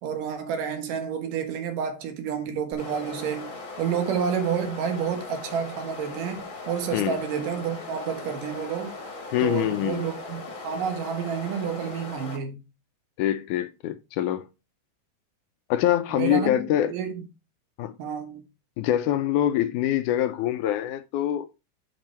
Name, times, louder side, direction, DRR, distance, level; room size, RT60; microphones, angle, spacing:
voice 1, 0.0-8.9 9.4-12.6 16.1-16.6 16.9-17.2 18.0-18.4, right 7 dB, 90° right, 3.0 m, -30 dB
sound 1, 2.7-12.4, left 3 dB, 40° left, 1.2 m, -39 dB
voice 2, 9.3-10.1 13.2-14.5 15.7-16.9 17.8-17.9 18.8-21.5, left 12 dB, 85° left, 2.1 m, -24 dB
9.0 x 5.9 x 3.2 m
omnidirectional pair, 3.7 m